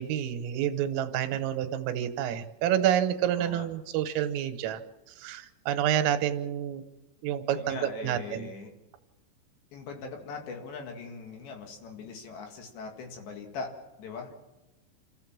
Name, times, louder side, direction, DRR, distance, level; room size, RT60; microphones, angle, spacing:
voice 1, 0.0-4.8 5.2-6.8 7.2-8.5, right 10 dB, 90° right, 9 dB, 3.8 m, -28 dB
voice 2, 3.4-3.7 7.6-8.7 9.7-13.7 14.0-14.3, left 4 dB, 65° left, 3 dB, 4.0 m, -41 dB
27.5 x 15.0 x 7.3 m, 1.0 s
omnidirectional pair, 5.7 m